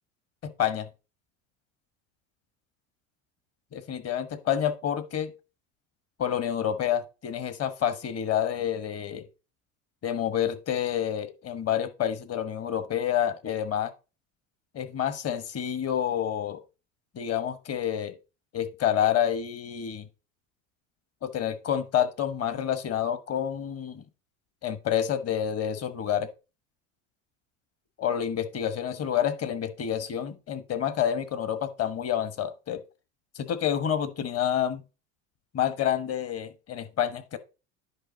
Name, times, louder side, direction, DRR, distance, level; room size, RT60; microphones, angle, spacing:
voice 1, 0.4-0.9 3.7-5.3 6.2-9.2 10.0-13.9 14.7-16.6 17.1-18.1 18.5-20.1 21.2-24.0 24.6-26.3 28.0-32.8 33.3-34.8 35.5-37.4, left 9 dB, 35° left, 1.3 m, -28 dB
10.0 x 5.1 x 4.0 m
hypercardioid pair, 85°, 40 cm